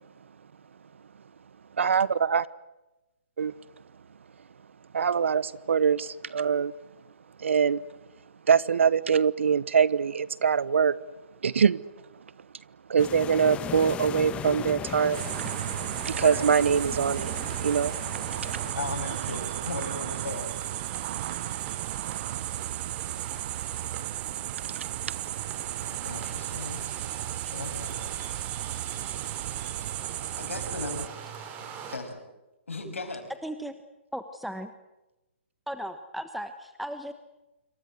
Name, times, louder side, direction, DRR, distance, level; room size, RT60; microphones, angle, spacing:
voice 1, 1.8-2.5 3.4-3.5 4.9-6.7 7.4-7.8 8.5-10.9 11.4-11.8 12.9-15.2 16.0-17.3 17.6-17.9, right 6 dB, 75° right, 1.0 m, -23 dB
sound 1, 13.0-18.7, left 9 dB, 15° left, 1.4 m, -38 dB
sound 2, 14.8-32.0, right 7 dB, 25° right, 4.9 m, -44 dB
sound 3, 15.1-31.1, right 14 dB, 45° right, 0.9 m, -34 dB
voice 2, 16.1-16.5 17.5-17.7 18.7-20.5 25.9-26.8 27.4-28.1 28.4-28.5 30.4-31.1 31.9-32.2 32.7-33.3, left 3 dB, 90° left, 7.1 m, -37 dB
voice 3, 33.4-33.7 34.1-34.7 35.7-37.1, equal, ahead, 1.2 m, -36 dB
27.0 x 24.5 x 8.1 m
hypercardioid pair, 140°, 7 cm